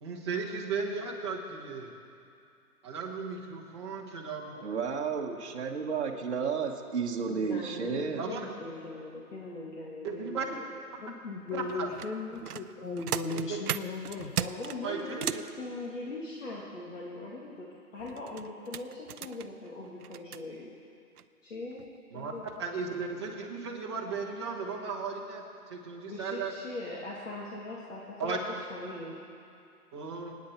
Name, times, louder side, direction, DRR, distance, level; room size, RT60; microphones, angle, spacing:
voice 1, 0.0-1.9 2.8-4.6 8.2-8.4 10.0-10.5 11.5-11.9 14.8-15.4 22.1-22.3 22.6-25.4 25.7-26.5 28.2-28.4 29.9-30.4, right 5 dB, 20° right, -4 dB, 1.2 m, -35 dB
voice 2, 4.6-8.2, right 6 dB, 45° right, 0 dB, 1.2 m, -32 dB
voice 3, 7.3-10.7 14.4-17.7 17.9-20.7 21.4-21.9 22.1-22.5 26.0-29.2, left 2 dB, 55° left, -4 dB, 2.0 m, -41 dB
voice 4, 11.0-14.3, left 4 dB, 85° left, 2 dB, 1.8 m, -36 dB
sound 1, 11.7-15.5 18.0-20.4 21.2-21.3 21.7-21.9 22.3-22.6 22.9-23.0, right 9 dB, 75° right, 0.6 m, -37 dB
24.5 x 9.5 x 4.3 m, 2.5 s
hypercardioid pair, 170°, 46 cm